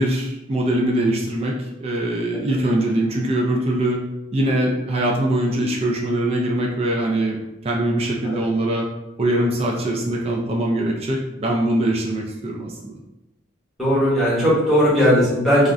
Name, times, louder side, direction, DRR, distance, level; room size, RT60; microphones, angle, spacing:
voice 1, 0.0-1.5 1.8-4.0 4.3-8.9 9.2-13.0, right 1 dB, 30° right, -1 dB, 0.3 m, -22 dB
voice 2, 13.8-15.7, equal, ahead, -9 dB, 0.9 m, -17 dB
2.4 x 2.1 x 3.6 m, 0.97 s
head